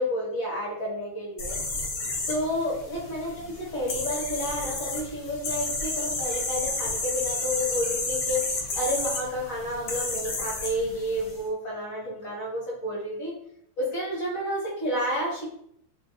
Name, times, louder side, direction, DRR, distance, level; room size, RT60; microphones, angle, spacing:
voice 1, 0.0-1.6 2.3-13.3 13.8-15.5, equal, 50° left, -6 dB, 1.2 m, -30 dB
sound 1, 1.4-11.4, left 3 dB, 70° left, 0.8 m, -31 dB
3.2 x 2.5 x 2.9 m, 0.72 s
omnidirectional pair, 2.3 m